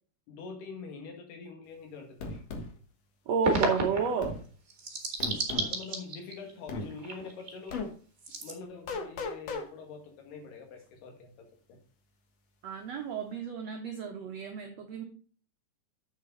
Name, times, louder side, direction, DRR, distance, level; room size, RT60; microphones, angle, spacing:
voice 1, 0.3-2.4 5.5-7.8 8.4-11.8, left 4 dB, 80° left, 3 dB, 4.0 m, -45 dB
sound 1, 2.2-2.7 4.2-4.4 5.2-5.7 6.7-6.9 7.7-7.9 8.9-9.7, left 3 dB, 55° left, 2.0 m, -35 dB
voice 2, 3.3-4.4 12.6-15.0, right 6 dB, 85° right, 3 dB, 1.4 m, -31 dB
sound 2, 3.4-4.2 4.7-6.5 6.8-7.7 8.2-8.5, right 2 dB, 35° right, 1.5 m, -31 dB
8.2 x 6.7 x 4.0 m, 0.40 s
omnidirectional pair, 4.5 m